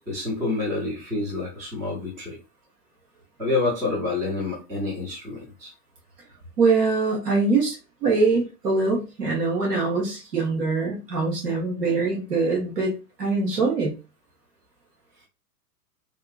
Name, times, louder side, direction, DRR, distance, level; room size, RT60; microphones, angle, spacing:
voice 1, 0.0-2.4 3.4-5.7, left 3 dB, 5° right, -5 dB, 0.4 m, -28 dB
voice 2, 6.6-7.8 8.0-12.9 13.2-13.9, right 3 dB, 75° right, -2 dB, 1.3 m, -23 dB
2.8 x 2.5 x 2.3 m, 0.30 s
figure-of-eight pair, 110°, 48 cm